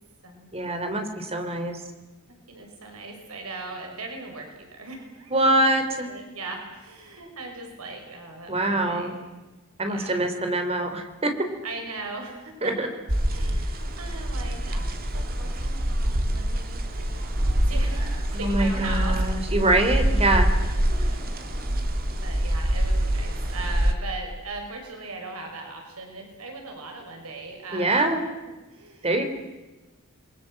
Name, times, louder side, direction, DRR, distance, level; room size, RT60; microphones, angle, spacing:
voice 1, 0.5-1.8 5.3-6.1 8.5-9.2 9.8-11.3 12.6-12.9 18.4-20.5 27.7-28.2 29.0-29.2, right 2 dB, 30° right, 6 dB, 3.4 m, -24 dB
voice 2, 2.3-5.4 6.1-9.2 9.9-10.3 11.6-12.7 13.3-19.2 20.7-21.8 22.2-28.0 28.7-29.2, right 3 dB, 85° right, 2 dB, 5.9 m, -39 dB
sound 1, 13.1-23.9, right 1 dB, 45° right, 2.5 m, -25 dB
28.5 x 22.5 x 7.8 m, 1.1 s
head